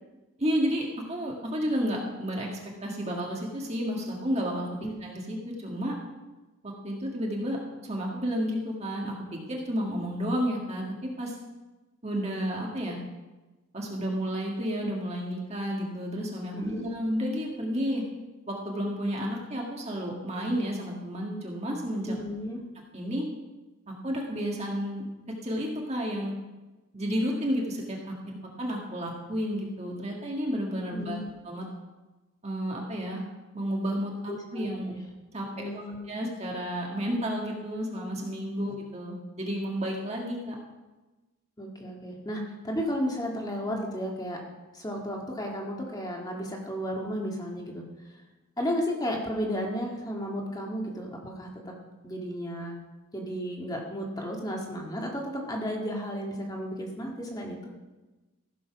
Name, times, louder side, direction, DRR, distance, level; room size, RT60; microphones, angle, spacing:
voice 1, 0.4-4.7 5.0-5.9 6.6-7.6 7.8-11.4 12.0-13.0 13.7-18.0 18.5-22.1 22.9-23.3 24.0-25.0 25.4-26.3 26.9-31.2 31.4-31.6 32.4-33.2 33.5-35.0 35.3-40.6, equal, 30° right, -1 dB, 1.8 m, -31 dB
voice 2, 22.1-22.6 30.9-31.3 34.3-35.0 35.5-36.2 41.6-44.4 44.7-48.1 48.6-51.7 52.0-52.8 53.1-57.6, equal, 20° left, -1 dB, 1.9 m, -33 dB
15.0 x 7.0 x 6.0 m, 1.1 s
head